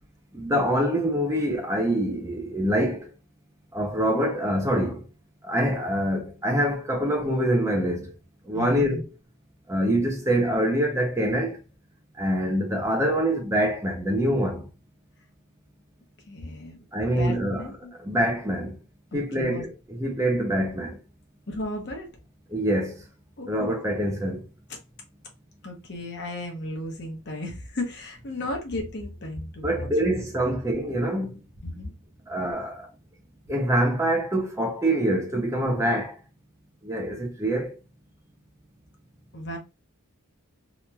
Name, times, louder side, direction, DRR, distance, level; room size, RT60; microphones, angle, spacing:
voice 1, 0.3-3.1 3.7-5.1 5.4-8.1 8.5-9.1 9.7-11.6 12.2-14.7 16.9-18.8 19.1-21.0 22.5-23.0 23.5-24.4 29.6-31.4 32.3-32.9 33.5-36.2 36.8-37.8, right 1 dB, 15° right, 0.5 m, -25 dB
voice 2, 8.5-9.0 16.3-16.8 17.2-17.9 19.1-19.6 21.5-22.1 23.4-23.8 25.6-30.2 31.6-31.9 39.3-39.6, left 1 dB, 50° left, 0.9 m, -35 dB
2.9 x 2.8 x 2.2 m
head